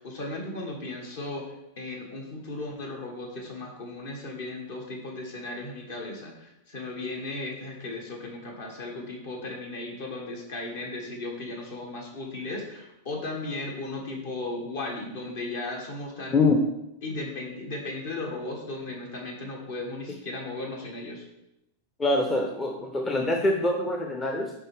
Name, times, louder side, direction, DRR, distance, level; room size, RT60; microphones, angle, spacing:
voice 1, 0.0-16.4 17.0-21.3, left 2 dB, 55° left, 1 dB, 1.7 m, -36 dB
voice 2, 16.3-16.6 22.0-24.5, left 2 dB, 20° left, 3 dB, 0.7 m, -24 dB
10.0 x 3.7 x 3.6 m, 0.87 s
figure-of-eight pair, 90°, 0 cm